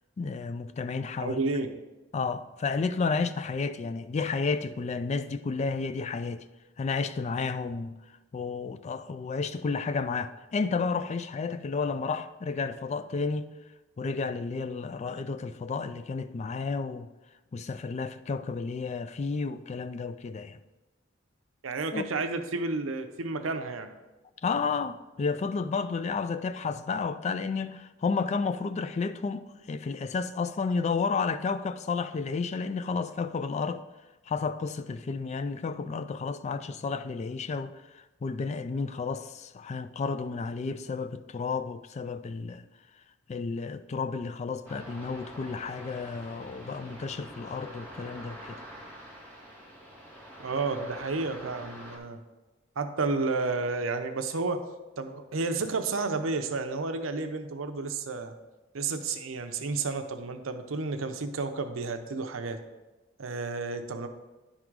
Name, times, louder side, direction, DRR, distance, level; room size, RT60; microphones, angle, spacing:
voice 1, 0.2-1.4 2.1-6.4 6.8-7.9 8.3-13.5 14.0-17.1 17.5-20.6 21.9-22.1 24.4-33.8 34.3-37.7 38.2-42.6 43.3-48.6, left 4 dB, 35° left, 0.3 m, -31 dB
voice 2, 1.2-1.7 21.6-23.9 50.4-52.2 52.8-54.6 55.0-58.3 58.7-62.6 63.2-64.1, right 3 dB, 90° right, 0.7 m, -31 dB
sound 1, 44.6-52.0, equal, 10° left, 1.8 m, -46 dB
10.5 x 3.7 x 4.6 m
head